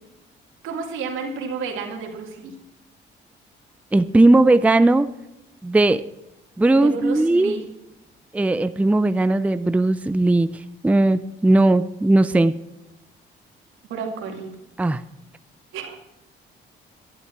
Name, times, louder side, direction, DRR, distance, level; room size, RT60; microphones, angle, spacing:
voice 1, 0.6-2.5 6.7-7.6 13.9-14.6 15.7-16.0, right 5 dB, 90° right, 2 dB, 2.4 m, -31 dB
voice 2, 3.9-5.1 5.6-6.0 6.6-7.6 8.3-10.5 10.8-12.5 14.8-15.0, right 2 dB, 5° right, 13 dB, 0.4 m, -17 dB
11.0 x 11.0 x 4.6 m, 0.95 s
cardioid pair, 90°, 20 cm